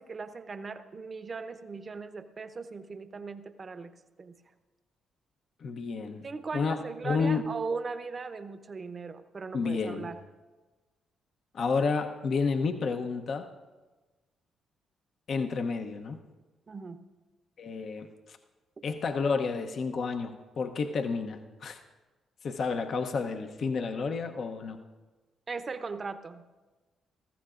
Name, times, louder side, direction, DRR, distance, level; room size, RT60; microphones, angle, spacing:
voice 1, 0.0-3.9 4.2-4.4 6.2-10.2 16.7-17.0 25.5-26.4, right 4 dB, 40° right, 10 dB, 0.8 m, -38 dB
voice 2, 5.6-6.3 6.5-6.8 7.0-7.5 9.5-10.1 11.5-13.5 15.3-16.2 17.6-18.4 18.8-21.8 22.4-24.8, left 4 dB, 60° left, 6 dB, 0.8 m, -30 dB
20.0 x 14.5 x 2.5 m, 1.2 s
supercardioid pair, 60°, 0 cm